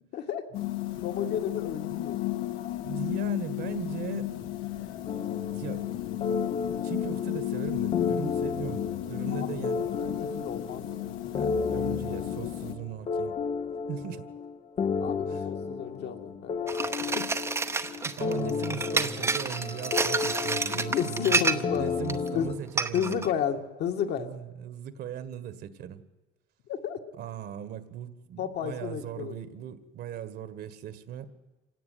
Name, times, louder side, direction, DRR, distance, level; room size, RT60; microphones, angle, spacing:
sound 1, 0.5-12.7, left 15 dB, 85° left, 2.2 m, -33 dB
voice 1, 1.0-2.2 9.3-9.6 10.0-11.2 15.0-16.5 17.0-17.2 20.7-21.9 22.3-22.6 22.9-24.3 26.7-27.0 28.4-29.3, left 8 dB, 55° left, 4 dB, 2.2 m, -32 dB
voice 2, 2.8-4.3 5.5-5.9 6.6-10.0 11.4-13.4 13.9-14.2 15.3-15.5 18.0-23.3 24.2-26.0 27.2-31.3, right 9 dB, 55° right, 12 dB, 1.7 m, -38 dB
sound 2, 5.1-22.5, left 5 dB, 30° left, 0.8 m, -33 dB
sound 3, 16.7-21.8 22.1-22.3 22.8-23.3, right 4 dB, 15° right, 0.9 m, -29 dB
26.5 x 17.0 x 9.5 m, 1.2 s
cardioid pair, 150°, 21 cm